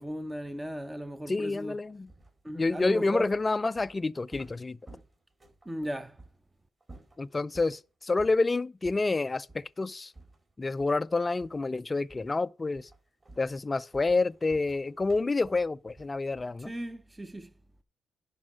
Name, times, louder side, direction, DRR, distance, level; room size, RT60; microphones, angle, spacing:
voice 1, 0.0-1.8 2.4-3.3 5.7-6.2 16.6-17.5, equal, 10° right, 0.8 m, -36 dB
voice 2, 1.3-2.1 2.5-4.8 7.2-10.1 10.6-12.9 13.4-16.7, left 3 dB, 25° left, 0.4 m, -28 dB
sound 1, 2.1-5.7 6.2-6.4 6.8-7.8 8.2-8.5 8.8-9.1 9.5-9.7 10.1-11.1 11.4-11.7 12.1-12.4 12.7-16.7, right 2 dB, 30° right, 4.5 m, -53 dB
10.5 x 5.2 x 6.1 m
cardioid pair, 90°, 0 cm